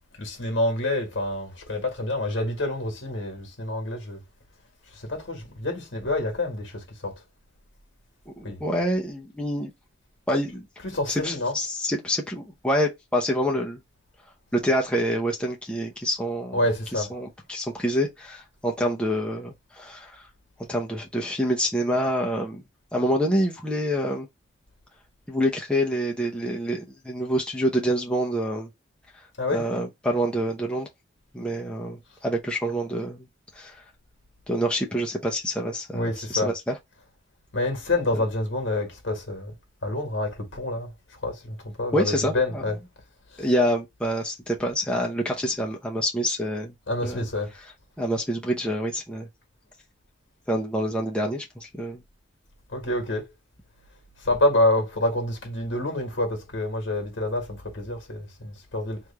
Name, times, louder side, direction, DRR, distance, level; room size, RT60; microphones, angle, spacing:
voice 1, 0.2-4.2 5.1-7.1 8.4-8.6 10.8-11.5 16.5-17.1 29.4-29.6 35.9-36.5 37.5-39.5 39.8-40.9 41.2-42.7 46.9-47.5 52.7-53.2 54.2-59.0, left 1 dB, 90° left, 1.5 m, -27 dB
voice 2, 8.3-9.7 10.3-10.7 11.1-13.8 14.5-16.6 16.9-20.2 20.7-22.6 22.9-24.3 25.3-28.7 29.5-30.9 31.3-33.3 33.6-33.7 34.5-36.8 38.1-38.2 41.9-42.6 43.4-46.7 47.0-47.3 48.0-49.3 50.5-52.0, equal, 5° left, 0.7 m, -27 dB
3.2 x 2.5 x 3.3 m
head